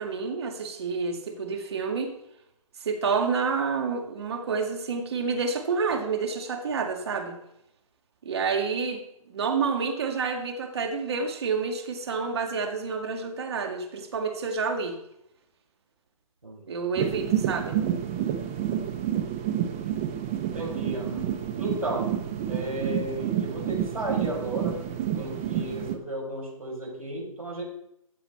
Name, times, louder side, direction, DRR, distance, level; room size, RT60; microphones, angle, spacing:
voice 1, 0.0-2.1 2.8-7.4 8.2-9.0 9.3-15.0 16.7-17.8, right 5 dB, 50° right, 4 dB, 2.0 m, -29 dB
voice 2, 16.4-16.7 18.4-18.8 20.5-22.2 22.5-24.8 25.2-27.6, right 1 dB, 90° right, -1 dB, 5.3 m, -34 dB
sound 1, 16.9-25.9, right 10 dB, 25° right, 0.9 m, -29 dB
14.0 x 7.8 x 4.4 m, 0.78 s
figure-of-eight pair, 145°, 18 cm